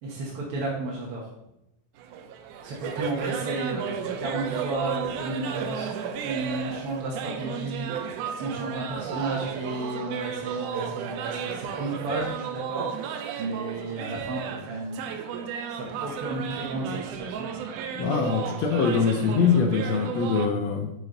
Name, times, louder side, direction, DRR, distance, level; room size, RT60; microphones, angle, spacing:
voice 1, 0.0-1.3 2.6-15.1 15.7-17.5, right 2 dB, 60° right, -3 dB, 1.6 m, -33 dB
sound 1, 2.0-20.5, right 7 dB, 85° right, 2.1 m, -34 dB
voice 2, 18.0-20.9, left 5 dB, 75° left, 4 dB, 1.6 m, -23 dB
8.8 x 4.7 x 3.8 m, 0.86 s
omnidirectional pair, 3.6 m